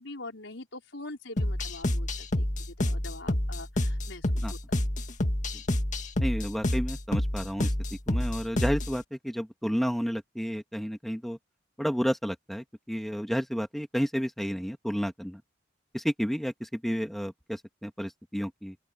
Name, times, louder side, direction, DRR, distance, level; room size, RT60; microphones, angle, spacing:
voice 1, 0.0-4.9, left 2 dB, 90° left, 5.1 m, -44 dB
sound 1, 1.4-9.0, left 1 dB, 40° left, 2.0 m, -28 dB
voice 2, 6.2-7.7 8.1-11.4 11.8-15.4 15.9-18.8, equal, ahead, 1.8 m, -31 dB
open air
head